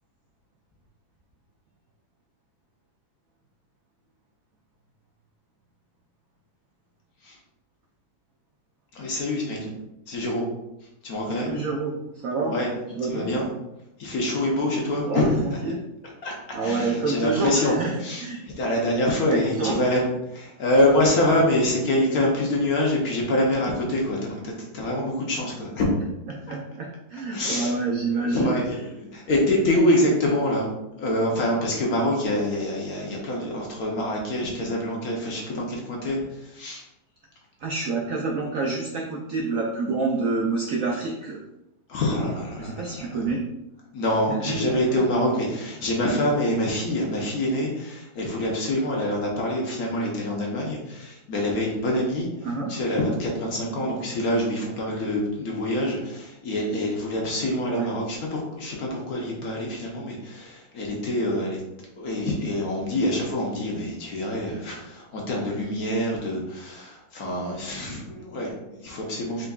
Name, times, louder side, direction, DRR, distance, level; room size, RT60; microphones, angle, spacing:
voice 1, 8.9-9.7 10.1-10.4 11.0-11.5 12.5-12.7 13.1-13.5 14.0-15.6 16.2-16.3 16.6-25.9 26.5-26.6 27.3-27.8 28.0-30.7 31.0-36.8 41.9-43.3 43.9-61.6 62.0-69.5, left 1 dB, 60° left, -1 dB, 1.1 m, -25 dB
voice 2, 11.4-12.0 12.2-12.5 13.0-13.3 15.0-15.3 15.6-15.8 16.5-17.9 18.2-18.4 19.6-19.8 26.5-28.5 37.6-41.4 42.6-43.4 44.3-45.0 52.4-52.7 57.7-57.9, right 3 dB, 80° right, -1 dB, 0.7 m, -27 dB
4.5 x 3.9 x 2.3 m, 0.89 s
omnidirectional pair, 2.1 m